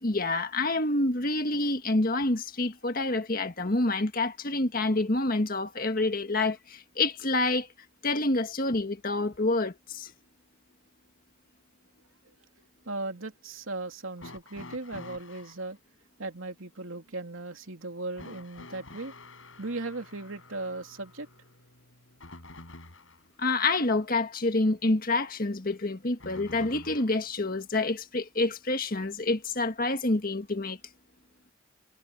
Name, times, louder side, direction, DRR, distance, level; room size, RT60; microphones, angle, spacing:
voice 1, 0.0-7.7 8.0-10.1 23.4-30.8, left 2 dB, 45° left, 1.7 m, -27 dB
voice 2, 12.8-15.8 16.2-19.1 19.6-21.3, right 2 dB, 85° right, 3.0 m, -37 dB
sound 1, 14.2-15.6 18.2-23.3 26.2-27.3 28.5-28.6 29.6-29.7, left 2 dB, 75° left, 7.0 m, -48 dB
head